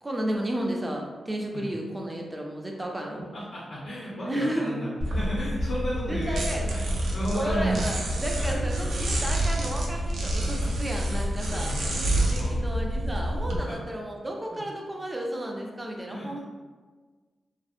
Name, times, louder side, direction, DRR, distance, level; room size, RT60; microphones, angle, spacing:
voice 1, 0.0-3.2 4.3-4.8 6.0-6.8 7.3-11.8 12.3-16.4, right 1 dB, 15° right, 0 dB, 0.3 m, -32 dB
voice 2, 3.3-6.4 6.7-7.8 8.4-8.6 10.4-10.7 11.6-12.6 13.5-13.8 14.5-14.6 16.1-16.3, equal, 80° left, -8 dB, 0.5 m, -34 dB
sound 1, 5.0-13.6, right 1 dB, 85° right, 0.4 m, -28 dB
2.4 x 2.0 x 2.5 m, 1.4 s
wide cardioid pair, 145°, 0 cm